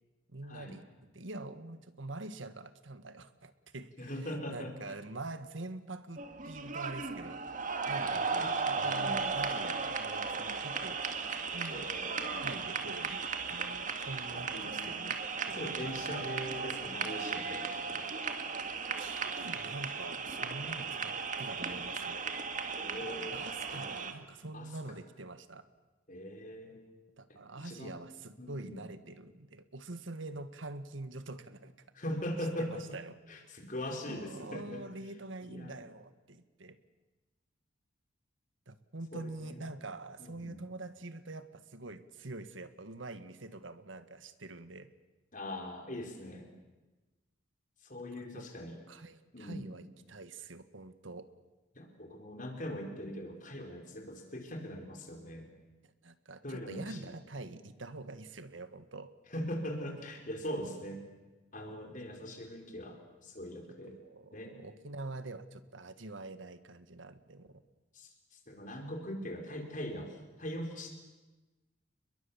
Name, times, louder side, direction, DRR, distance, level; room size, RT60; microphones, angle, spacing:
voice 1, 0.3-0.9 1.1-7.4 7.9-11.0 11.5-11.9 12.4-15.2 15.5-16.3 18.7-22.2 23.3-25.6 27.2-31.7 32.6-33.2 34.1-36.8 38.7-44.9 48.2-48.5 48.9-51.3 55.8-59.1 63.8-67.6, right 2 dB, 85° right, 11 dB, 1.6 m, -45 dB
voice 2, 4.0-4.7 8.1-9.3 11.7-12.5 14.3-15.2 15.5-18.1 22.7-23.4 23.7-23.8 24.5-25.0 26.1-26.8 27.3-28.0 28.4-28.8 31.9-33.0 33.3-34.8 35.4-35.8 39.1-39.7 40.2-40.6 45.3-46.5 47.8-48.8 49.3-49.7 51.7-55.5 56.4-57.0 59.3-61.0 61.5-64.0 64.3-64.6 67.9-70.9, equal, 45° left, 3 dB, 4.6 m, -41 dB
sound 1, 6.2-24.1, right 5 dB, 40° right, 2.1 m, -36 dB
30.0 x 22.0 x 7.2 m, 1.1 s
head